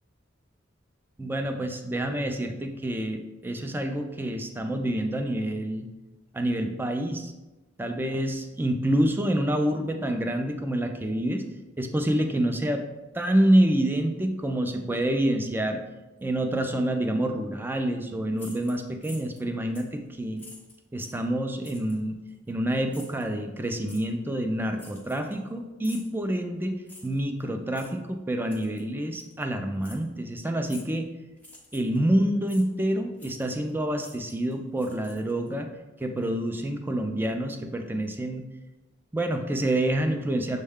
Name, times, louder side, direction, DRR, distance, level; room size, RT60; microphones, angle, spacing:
voice 1, 1.2-5.9 6.3-7.3 7.8-11.4 11.8-12.9 13.1-15.8 16.2-20.4 20.9-22.2 22.5-31.1 31.7-35.7 36.0-38.5 39.1-40.6, right 1 dB, 10° right, 5 dB, 0.3 m, -27 dB
sound 1, 18.3-19.4 19.7-20.0 20.4-21.2 21.6-22.0 22.9-23.2 23.9-24.0 24.8-25.5 25.8-26.1 26.9-27.2 27.7-27.9 28.5-28.8 29.2-29.3 29.8-30.0 30.7-31.0 31.4-32.0 32.5-32.7 33.2-33.7 34.0-35.5, left 2 dB, 10° left, 0.7 m, -48 dB
6.3 x 2.2 x 3.5 m, 1.1 s
head